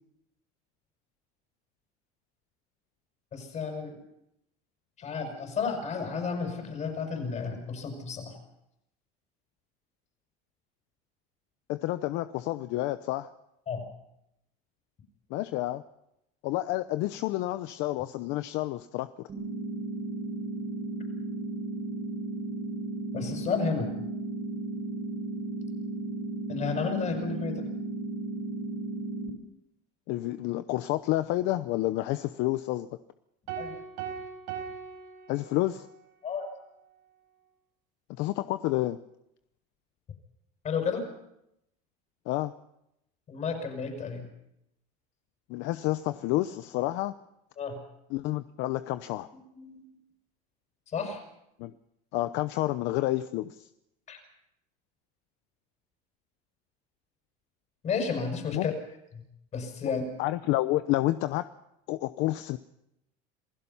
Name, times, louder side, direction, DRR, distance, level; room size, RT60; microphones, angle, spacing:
voice 1, 3.3-4.0 5.0-8.3 13.7-13.8 23.1-23.9 26.5-27.7 33.6-33.8 36.2-36.5 40.6-41.1 43.3-44.3 47.6-47.8 49.3-49.9 50.9-51.2 54.1-54.2 57.8-58.7 59.1-59.2 59.5-60.0, left 5 dB, 35° left, 4 dB, 6.1 m, -32 dB
voice 2, 11.7-13.3 15.3-15.8 16.4-19.3 30.1-32.9 35.3-35.9 38.2-39.0 42.3-42.5 45.5-47.1 48.1-49.3 51.6-51.7 52.1-53.7 58.5-58.7 59.8-59.9 60.2-61.5 61.9-62.6, left 16 dB, 65° left, 12 dB, 0.8 m, -29 dB
sound 1, 19.3-29.3, right 2 dB, 35° right, 4.8 m, -35 dB
sound 2, 33.5-36.0, right 7 dB, 80° right, 4.5 m, -39 dB
27.5 x 16.5 x 5.7 m, 0.83 s
cardioid pair, 130°, 20 cm